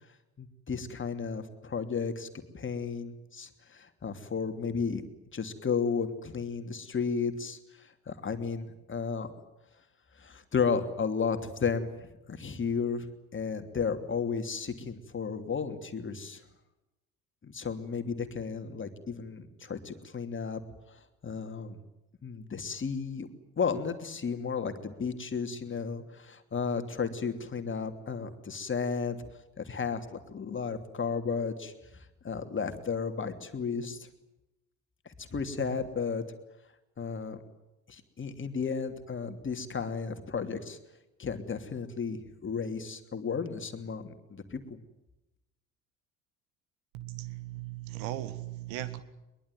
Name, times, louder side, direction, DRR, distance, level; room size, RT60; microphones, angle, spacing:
voice 1, 0.4-2.3 2.5-5.0 5.3-9.3 10.2-13.1 13.3-16.4 17.4-20.6 20.9-21.8 22.2-23.3 23.6-29.2 29.6-34.1 35.0-36.2 37.0-37.4 37.9-40.8 41.2-44.8, left 5 dB, 25° left, 7 dB, 3.0 m, -33 dB
voice 2, 46.9-49.0, right 15 dB, 60° right, 14 dB, 1.9 m, -38 dB
22.5 x 22.0 x 9.4 m, 0.96 s
figure-of-eight pair, 60°, 44 cm